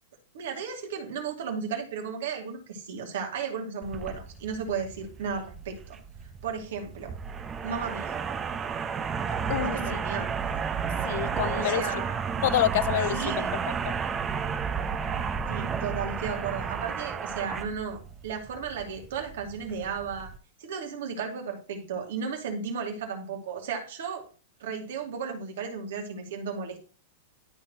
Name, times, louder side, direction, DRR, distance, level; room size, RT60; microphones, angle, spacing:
voice 1, 0.3-6.0 6.4-7.1 7.6-8.2 9.6-10.3 11.5-12.2 13.1-13.5 15.5-20.3 20.6-24.3 24.6-26.8, right 6 dB, 75° right, 2.5 m, -34 dB
sound 1, 3.8-20.4, right 6 dB, 20° right, 0.7 m, -32 dB
voice 2, 9.5-10.0 11.0-12.0 12.4-13.4 13.9-14.0, left 15 dB, 65° left, 0.3 m, -27 dB
12.5 x 4.6 x 2.9 m
hypercardioid pair, 135°, 0 cm